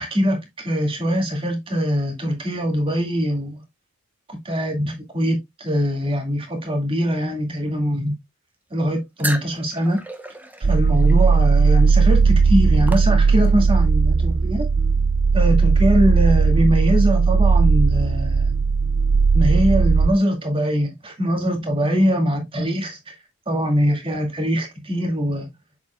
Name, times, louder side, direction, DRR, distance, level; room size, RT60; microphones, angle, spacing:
voice 1, 0.0-3.6 4.3-8.2 8.7-10.0 10.6-14.7 15.3-18.5 19.3-23.1 23.5-25.5, equal, 25° right, 2.1 m, -22 dB
sound 1, 9.2-13.7, right 1 dB, 10° right, 0.8 m, -35 dB
sound 2, 10.6-20.1, right 4 dB, 55° right, 0.5 m, -17 dB
7.3 x 6.8 x 2.3 m
head